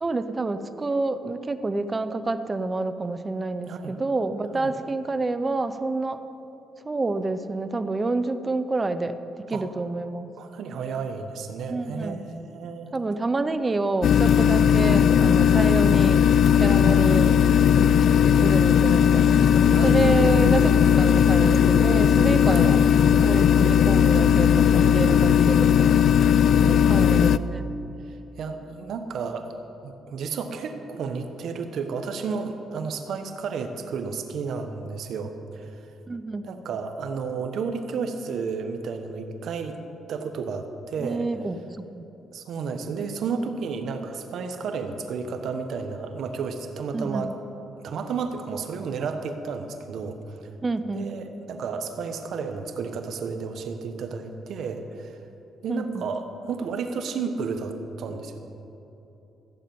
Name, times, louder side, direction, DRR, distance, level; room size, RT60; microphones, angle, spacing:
voice 1, 0.0-6.2 6.8-9.2 9.5-10.3 11.7-12.2 12.9-16.3 16.6-17.4 17.8-18.0 18.4-19.3 19.8-22.8 23.2-26.0 26.9-27.7 36.1-36.5 41.0-41.6 41.9-42.1 46.9-47.3 50.6-51.1 55.7-56.0, right 3 dB, 25° right, 11 dB, 0.8 m, -28 dB
voice 2, 3.6-4.0 4.5-4.7 9.5-9.7 10.4-12.9 14.7-14.8 16.7-17.3 19.7-20.2 22.5-22.8 26.6-27.4 28.1-29.5 29.8-35.8 36.4-39.8 40.1-41.3 42.3-47.3 47.8-50.4 50.9-55.2 55.6-58.4, right 5 dB, 70° right, 6 dB, 1.2 m, -32 dB
sound 1, 14.0-27.4, left 8 dB, 65° left, 0.4 m, -18 dB
14.5 x 9.1 x 7.1 m, 3.0 s
cardioid pair, 90°, 0 cm